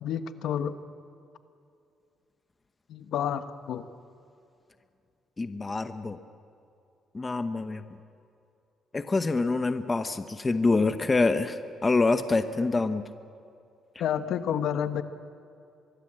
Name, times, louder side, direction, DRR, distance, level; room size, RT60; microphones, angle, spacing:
voice 1, 0.0-0.7 2.9-3.9 14.0-15.0, left 9 dB, 70° left, 10 dB, 1.2 m, -29 dB
voice 2, 5.4-6.2 7.1-7.8 8.9-13.0, left 3 dB, 20° left, 9 dB, 0.9 m, -26 dB
24.5 x 22.0 x 7.7 m, 2.6 s
cardioid pair, 140°, 0 cm